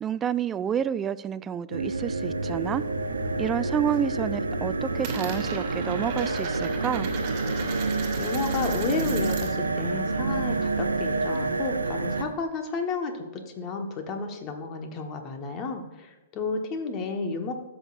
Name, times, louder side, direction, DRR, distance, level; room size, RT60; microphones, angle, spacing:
voice 1, 0.0-2.8 3.4-7.1, right 8 dB, 20° right, 16 dB, 0.3 m, -29 dB
sound 1, 1.7-12.2, right 3 dB, 90° right, 0.6 m, -28 dB
Coin (dropping), 2.2-3.3 3.6-4.1 4.4-9.7 10.0-11.7, right 5 dB, 45° right, 1.7 m, -39 dB
voice 2, 8.2-17.5, left 4 dB, 35° left, 4 dB, 1.3 m, -32 dB
13.5 x 6.3 x 2.5 m, 1.1 s
hypercardioid pair, 115°, 0 cm